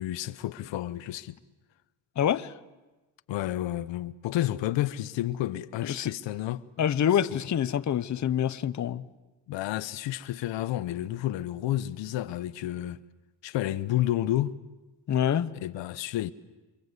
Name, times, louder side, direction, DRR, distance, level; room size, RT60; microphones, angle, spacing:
voice 1, 0.0-1.4 3.3-6.6 9.5-13.0 13.4-14.5 15.6-16.3, left 14 dB, 85° left, 1.0 m, -30 dB
voice 2, 2.2-2.5 5.8-6.1 6.8-9.1 15.1-15.5, left 9 dB, 40° left, 0.9 m, -26 dB
29.0 x 24.5 x 8.1 m
cardioid pair, 110°, 43 cm